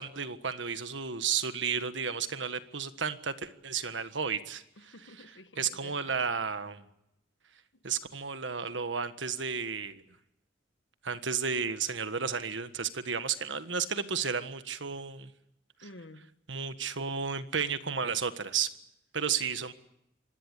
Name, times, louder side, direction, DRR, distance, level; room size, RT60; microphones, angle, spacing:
voice 1, 0.0-4.6 5.6-6.9 7.8-10.0 11.0-15.3 16.5-18.7 19.1-19.7, right 6 dB, 75° right, 11 dB, 1.5 m, -32 dB
voice 2, 4.8-6.1 7.7-7.8 15.8-16.3 19.4-19.5, left 2 dB, 70° left, 10 dB, 1.6 m, -51 dB
26.0 x 20.5 x 8.4 m, 0.81 s
head